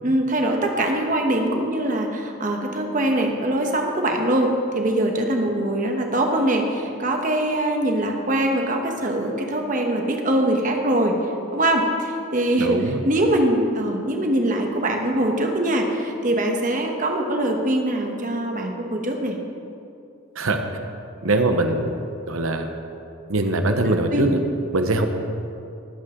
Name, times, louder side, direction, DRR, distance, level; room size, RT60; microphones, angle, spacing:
voice 1, 0.0-11.1 11.5-19.4 23.8-24.4, right 1 dB, 40° right, 2 dB, 1.3 m, -23 dB
voice 2, 12.6-13.0 20.4-20.6 21.2-22.0 22.3-22.7 23.3-24.3 24.7-25.1, right 2 dB, 80° right, 6 dB, 1.0 m, -22 dB
20.0 x 8.4 x 3.8 m, 2.6 s
head